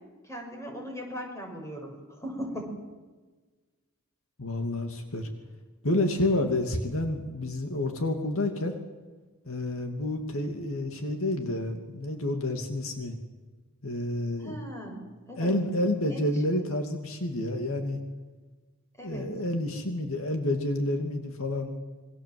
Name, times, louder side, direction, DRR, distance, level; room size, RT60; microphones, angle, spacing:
voice 1, 0.2-2.8 14.4-15.6 16.1-16.6 19.0-19.3, equal, 15° left, 2 dB, 6.5 m, -39 dB
voice 2, 4.4-5.3 5.8-8.7 9.5-13.2 13.8-14.6 15.4-18.0 19.0-21.7, left 1 dB, 70° left, 4 dB, 2.6 m, -29 dB
27.0 x 23.5 x 7.8 m, 1.3 s
head